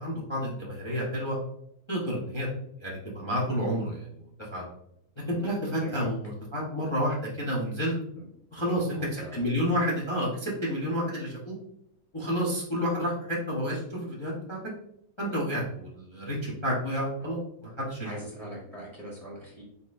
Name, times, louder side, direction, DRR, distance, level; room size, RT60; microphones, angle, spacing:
voice 1, 0.0-1.4 1.9-2.5 2.8-4.1 4.5-4.7 5.3-7.9 8.5-11.5 12.1-14.6 15.2-18.1, equal, 20° left, -5 dB, 0.9 m, -30 dB
voice 2, 8.6-9.4 9.6-9.8 17.2-17.3 18.0-19.6, right 1 dB, 25° right, -5 dB, 1.0 m, -42 dB
4.5 x 4.1 x 2.6 m, 0.72 s
omnidirectional pair, 1.8 m